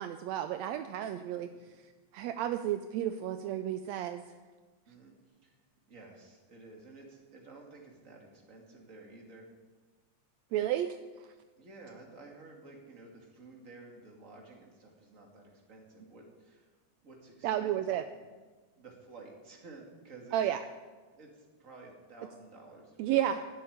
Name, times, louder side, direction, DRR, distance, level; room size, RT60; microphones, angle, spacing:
voice 1, 0.0-1.5 2.1-4.2 10.5-11.0 17.4-18.1 20.3-20.6 23.0-23.4, right 11 dB, 80° right, 9 dB, 1.6 m, -32 dB
voice 2, 5.9-9.5 11.6-16.7 17.0-18.0 18.8-20.4 21.1-23.5, right 3 dB, 25° right, 0 dB, 2.4 m, -52 dB
12.5 x 7.7 x 10.0 m, 1.3 s
omnidirectional pair, 3.6 m